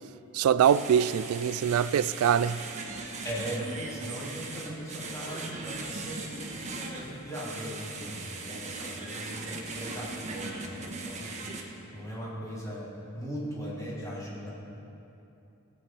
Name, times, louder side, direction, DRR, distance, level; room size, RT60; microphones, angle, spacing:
voice 1, 0.3-2.6, right 8 dB, 90° right, 0.3 m, -23 dB
sound 1, 0.6-11.6, right 3 dB, 35° right, 1.1 m, -39 dB
voice 2, 3.2-11.3 11.9-12.9 13.1-14.5, equal, 15° left, 3.0 m, -38 dB
17.0 x 8.3 x 4.5 m
head